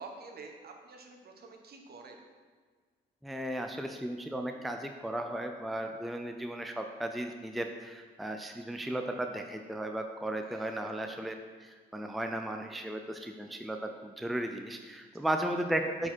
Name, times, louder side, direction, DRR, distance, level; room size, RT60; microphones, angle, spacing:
voice 1, 0.0-2.2 10.4-10.8 15.3-15.4, right 3 dB, 50° right, 3 dB, 1.2 m, -48 dB
voice 2, 3.2-11.3 11.6-16.1, right 1 dB, ahead, 5 dB, 0.5 m, -35 dB
8.3 x 4.8 x 4.4 m, 1.5 s
cardioid pair, 90°, 20 cm